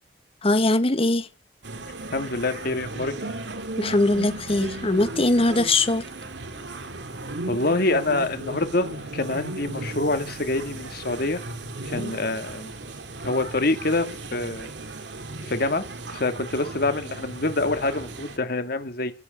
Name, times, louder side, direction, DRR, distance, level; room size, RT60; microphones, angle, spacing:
voice 1, 0.4-1.3 3.8-6.0, left 2 dB, 30° left, 1.5 m, -21 dB
sound 1, 1.6-18.4, right 2 dB, 70° right, 2.8 m, -36 dB
voice 2, 2.1-3.2 7.5-11.4 11.9-12.7 13.2-14.7 15.4-19.1, left 2 dB, 55° left, 2.3 m, -26 dB
23.5 x 7.9 x 7.1 m
head